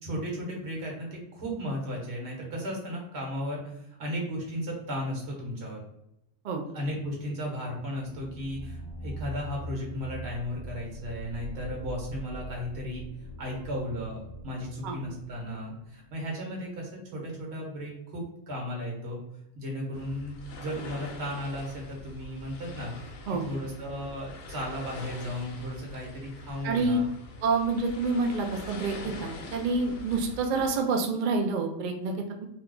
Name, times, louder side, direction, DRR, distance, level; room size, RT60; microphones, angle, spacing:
voice 1, 0.0-5.8 6.7-13.0 13.4-19.2 19.5-23.1 23.4-27.1, equal, 60° right, -1 dB, 1.2 m, -35 dB
sound 1, 8.0-16.5, right 1 dB, 65° left, 0.9 m, -42 dB
sound 2, 19.9-30.7, left 2 dB, 85° left, 1.0 m, -43 dB
voice 2, 26.6-27.0 27.4-32.5, right 3 dB, 75° right, 3 dB, 0.4 m, -28 dB
2.7 x 2.2 x 3.6 m, 0.81 s
omnidirectional pair, 1.3 m